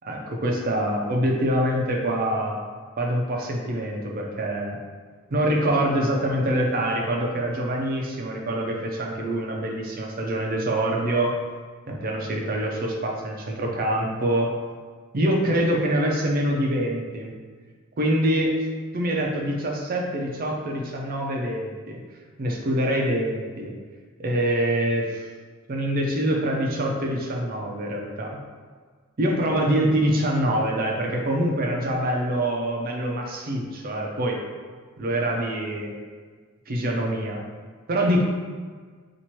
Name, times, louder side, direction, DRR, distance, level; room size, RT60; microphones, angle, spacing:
voice 1, 0.0-2.6 3.0-4.8 5.3-11.3 11.9-14.5 15.1-17.3 18.0-18.5 18.9-22.0 22.4-23.8 24.2-25.2 25.7-28.3 29.2-34.4 35.0-35.9 36.7-37.4 37.9-38.2, right 1 dB, 40° right, 0 dB, 0.5 m, -25 dB
2.9 x 2.5 x 4.3 m, 1.5 s
head